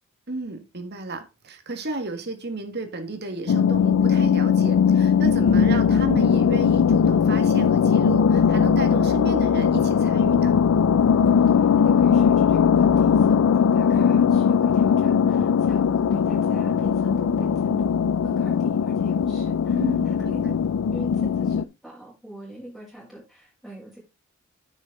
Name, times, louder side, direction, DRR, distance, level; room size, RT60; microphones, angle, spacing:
voice 1, 0.3-10.6 19.7-20.5, right 2 dB, 55° right, 1.8 m, -33 dB
sound 1, 3.5-21.6, left 7 dB, 85° left, 0.4 m, -19 dB
voice 2, 11.1-17.9 18.2-20.6 20.9-24.0, right 1 dB, ahead, 5.8 m, -43 dB
9.9 x 6.3 x 3.8 m
head